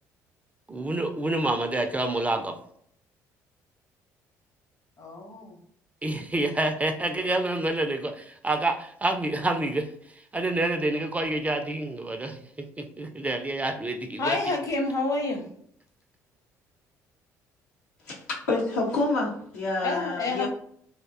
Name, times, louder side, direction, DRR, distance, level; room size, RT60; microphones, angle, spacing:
voice 1, 0.7-2.6 6.0-9.9 10.3-14.6, right 2 dB, 15° right, 6 dB, 0.4 m, -28 dB
voice 2, 5.0-5.6 14.2-15.4 19.8-20.5, left 3 dB, 40° left, 2 dB, 0.8 m, -28 dB
voice 3, 18.1-20.5, left 2 dB, 80° left, -4 dB, 0.8 m, -28 dB
2.5 x 2.1 x 2.3 m, 0.64 s
hypercardioid pair, 50°, 8 cm